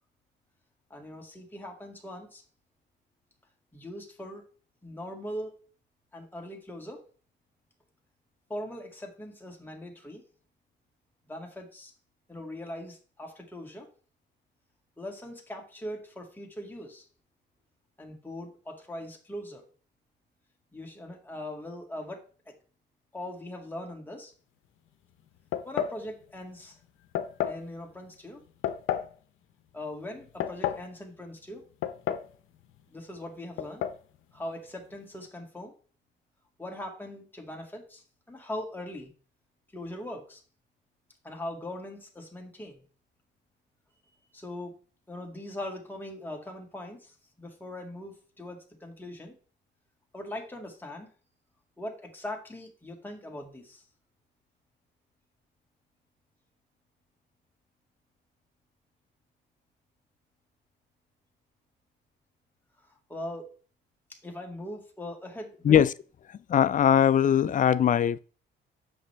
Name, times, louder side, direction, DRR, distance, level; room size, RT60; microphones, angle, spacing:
voice 1, 0.9-2.4 3.7-4.5 4.8-5.5 6.1-7.1 8.5-10.2 11.3-11.9 12.3-13.9 15.0-17.1 18.0-19.6 20.7-22.5 23.1-24.3 25.6-26.8 27.5-28.4 29.7-31.7 32.9-33.8 34.3-35.7 36.6-39.1 39.7-40.4 41.2-42.8 44.1-44.8 45.1-49.3 50.1-51.1 51.8-53.8 62.9-63.5 64.1-65.8, left 1 dB, 10° left, 2.2 m, -40 dB
sound 1, 25.5-26.0 27.2-27.6 28.6-29.1 30.2-30.9 31.8-32.4 32.6-32.7 33.6-34.0, left 10 dB, 85° left, 0.7 m, -31 dB
voice 2, 66.5-68.2, left 9 dB, 40° left, 0.4 m, -21 dB
7.8 x 6.1 x 3.3 m
cardioid pair, 90°, 20 cm